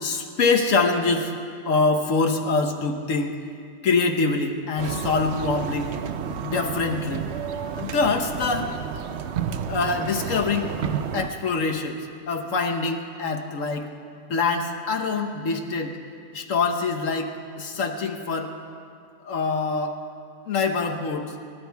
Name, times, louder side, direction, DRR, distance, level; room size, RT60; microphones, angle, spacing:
voice 1, 0.0-1.3 1.6-3.4 3.8-5.9 6.4-7.2 7.7-8.7 9.7-10.8 11.1-12.0 12.3-13.9 14.3-15.9 16.3-18.5 19.2-20.0 20.5-21.3, left 4 dB, 85° left, 4 dB, 1.4 m, -24 dB
sound 1, 4.8-11.3, right 7 dB, 65° right, 0.9 m, -31 dB
26.0 x 11.5 x 4.6 m, 2.3 s
omnidirectional pair, 1.3 m